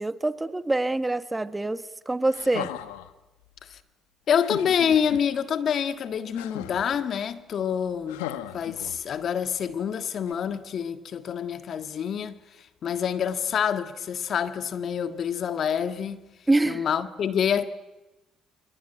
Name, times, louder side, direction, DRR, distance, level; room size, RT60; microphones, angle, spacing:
voice 1, 0.0-2.7 16.5-16.8, right 2 dB, 15° right, 1.5 m, -25 dB
sound 1, 2.3-3.1 4.3-5.2 6.3-7.0 8.1-9.2 10.3-10.4, left 14 dB, 90° left, 1.3 m, -37 dB
voice 2, 4.3-8.2 8.5-16.2 16.6-17.7, left 8 dB, 55° left, 1.6 m, -27 dB
25.5 x 23.5 x 9.1 m
hypercardioid pair, 60°, 0 cm